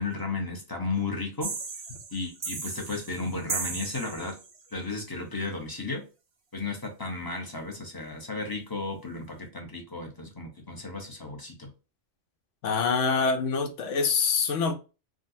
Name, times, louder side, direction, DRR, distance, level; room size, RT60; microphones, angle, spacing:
voice 1, 0.0-1.5 2.1-4.3 4.7-6.0 6.5-11.7, left 3 dB, 20° left, 0.7 m, -34 dB
sound 1, 1.4-4.6, right 4 dB, 55° right, 0.3 m, -36 dB
voice 2, 12.6-14.7, left 5 dB, 80° left, 1.0 m, -25 dB
3.7 x 2.2 x 2.6 m
omnidirectional pair, 1.3 m